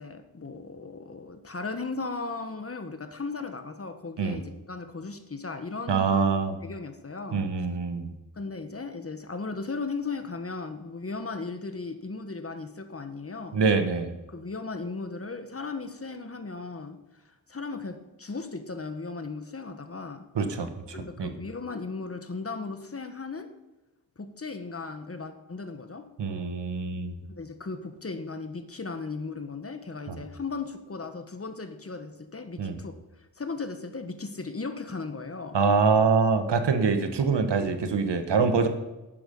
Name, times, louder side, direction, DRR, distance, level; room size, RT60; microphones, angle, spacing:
voice 1, 0.0-6.3 6.6-7.4 8.4-13.6 14.3-17.0 17.5-20.3 20.9-23.5 24.2-26.1 27.3-32.9 33.4-35.6, left 4 dB, 35° left, 8 dB, 1.4 m, -36 dB
voice 2, 5.9-6.6 7.3-8.1 13.5-14.1 20.3-20.7 21.2-21.3 26.2-27.1 30.1-30.2 32.6-32.8 35.5-38.7, right 5 dB, 80° right, 8 dB, 1.4 m, -24 dB
11.5 x 9.3 x 5.4 m, 1.0 s
cardioid pair, 70°, 41 cm